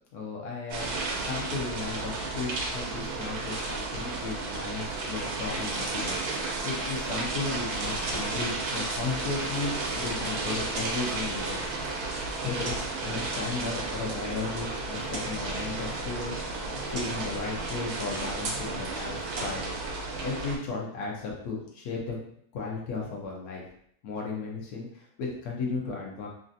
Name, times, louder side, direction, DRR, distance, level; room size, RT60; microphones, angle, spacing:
voice 1, 0.1-0.9 1.3-11.6 12.4-16.4 16.9-19.7 20.2-22.2 22.5-23.6 24.0-26.3, left 4 dB, 75° left, -2 dB, 1.2 m, -35 dB
sound 1, 0.7-20.6, right 3 dB, 85° right, 1.2 m, -33 dB
sound 2, 6.0-6.4 8.1-8.4 10.6-11.1 12.6-13.0 14.9-15.5 16.9-17.3 19.2-19.7, right 2 dB, 70° right, 0.4 m, -39 dB
sound 3, 9.7-17.9, left 3 dB, 50° left, 0.5 m, -46 dB
3.2 x 2.6 x 2.6 m, 0.66 s
omnidirectional pair, 1.6 m